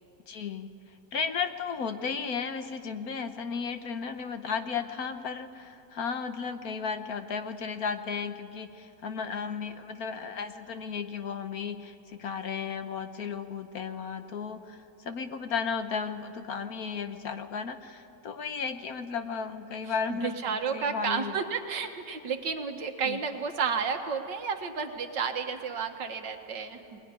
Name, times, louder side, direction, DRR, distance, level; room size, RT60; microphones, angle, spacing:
voice 1, 0.3-0.7 1.1-20.4 20.7-21.3 23.1-23.2, left 6 dB, 60° left, 8 dB, 1.4 m, -34 dB
voice 2, 19.9-27.0, right 6 dB, 80° right, 5 dB, 2.1 m, -32 dB
21.0 x 20.5 x 9.6 m, 2.8 s
omnidirectional pair, 1.9 m